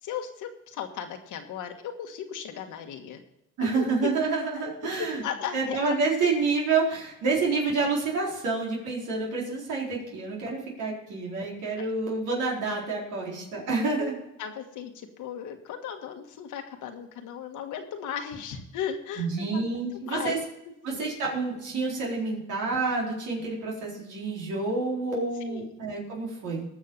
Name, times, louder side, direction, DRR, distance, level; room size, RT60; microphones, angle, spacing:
voice 1, 0.0-3.2 3.7-4.1 4.5-5.8 11.8-11.9 13.8-14.1 14.4-20.4 20.9-21.0 25.5-25.6, left 8 dB, 85° left, 6 dB, 1.6 m, -36 dB
voice 2, 3.6-5.2 5.5-14.1 19.2-20.4 20.8-26.7, right 4 dB, 85° right, -3 dB, 4.1 m, -28 dB
19.0 x 6.5 x 5.5 m, 0.86 s
cardioid pair, 90°, 30 cm